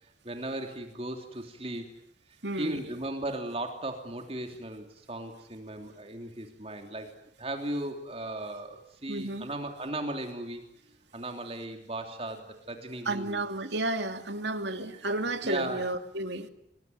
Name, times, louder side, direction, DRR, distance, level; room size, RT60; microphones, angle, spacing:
voice 1, 0.2-1.9 2.6-7.1 7.4-10.6 11.1-13.4 14.9-15.0 15.4-15.8, right 1 dB, 35° right, 4 dB, 3.1 m, -36 dB
voice 2, 2.4-2.8 9.1-9.5 13.1-16.5, right 2 dB, 75° right, 7 dB, 2.6 m, -32 dB
29.0 x 21.0 x 9.4 m, 0.76 s
head